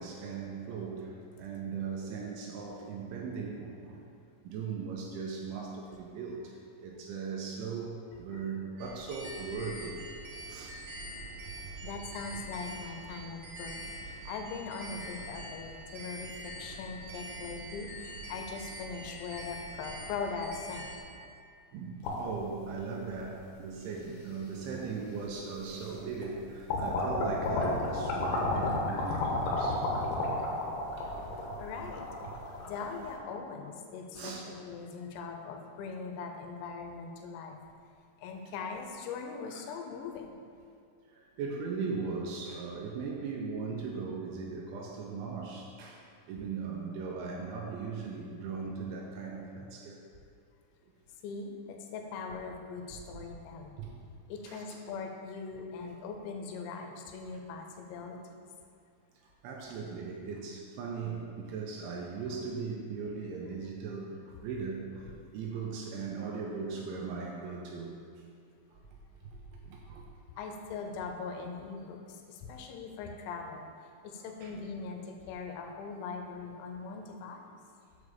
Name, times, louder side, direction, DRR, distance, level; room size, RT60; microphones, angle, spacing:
voice 1, 0.0-4.0 4.4-10.0 10.5-10.8 21.7-29.9 30.5-30.6 31.0-31.2 34.1-34.5 39.5-39.7 41.1-50.0 52.9-53.0 53.8-54.0 54.5-54.8 59.4-68.0 68.7-68.8 69.3-69.4 69.6-70.0 74.4-74.5, right 5 dB, 85° right, -1 dB, 2.9 m, -39 dB
sound 1, 8.8-21.0, right 1 dB, 60° right, 2.0 m, -44 dB
voice 2, 11.8-13.8 14.0-21.0 31.6-32.1 32.6-37.6 38.2-40.4 51.2-53.9 54.3-58.4 65.1-65.2 70.4-73.7 74.0-77.6, left 5 dB, 90° left, 3 dB, 3.5 m, -41 dB
sound 2, 22.0-23.2 24.0-24.1 25.3-25.4 25.8-26.3 26.7-33.2, left 2 dB, 75° left, 3.3 m, -32 dB
7.7 x 4.9 x 6.7 m, 2.3 s
omnidirectional pair, 5.9 m